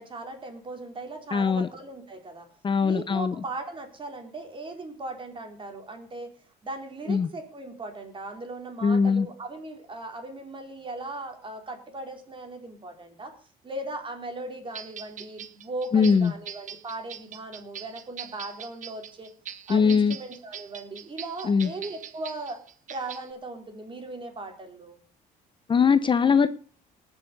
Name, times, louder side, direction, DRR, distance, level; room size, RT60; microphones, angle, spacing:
voice 1, 0.0-2.5 2.8-6.3 6.6-13.3 13.6-19.3 19.7-22.6 22.9-25.0, right 2 dB, 30° right, 5 dB, 3.9 m, -38 dB
voice 2, 1.3-1.7 2.6-3.3 7.1-7.3 8.8-9.3 15.9-16.3 19.7-20.2 21.4-21.7 25.7-26.5, left 5 dB, 30° left, 12 dB, 0.8 m, -21 dB
sound 1, 14.7-23.3, right 9 dB, 50° right, 1.1 m, -42 dB
18.5 x 7.1 x 6.6 m, 0.42 s
cardioid pair, 110°, 17 cm